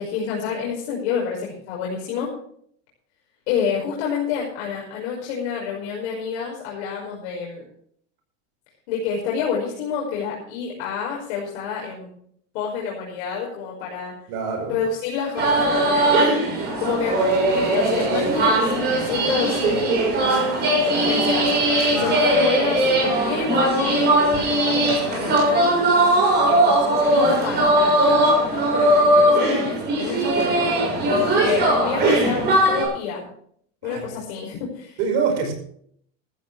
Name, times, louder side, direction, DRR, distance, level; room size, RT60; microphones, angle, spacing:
voice 1, 0.0-2.3 3.5-7.6 8.9-12.1 12.5-14.1 14.7-17.2 17.5-19.9 20.7-24.0 24.3-25.7 26.5-33.3 33.8-35.0, left 6 dB, 70° left, -3 dB, 5.7 m, -28 dB
voice 2, 14.3-14.8 21.9-22.1 33.8-34.1 35.0-35.5, right 5 dB, 55° right, 4 dB, 5.5 m, -25 dB
sound 1, 15.4-32.8, right 1 dB, 30° right, 6.7 m, -19 dB
16.0 x 14.5 x 3.4 m, 0.62 s
cardioid pair, 180°, 34 cm